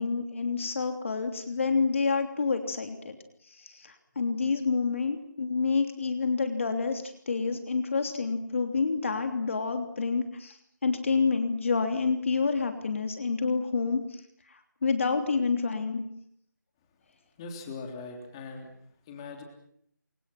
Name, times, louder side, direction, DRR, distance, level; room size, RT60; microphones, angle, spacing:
voice 1, 0.0-3.2 3.6-10.6 10.8-14.0 14.8-16.0, left 4 dB, 40° left, 6 dB, 3.1 m, -28 dB
voice 2, 17.4-18.7 19.0-19.4, left 4 dB, 15° left, 3 dB, 3.4 m, -40 dB
30.0 x 26.0 x 6.0 m, 0.67 s
figure-of-eight pair, 170°, 11 cm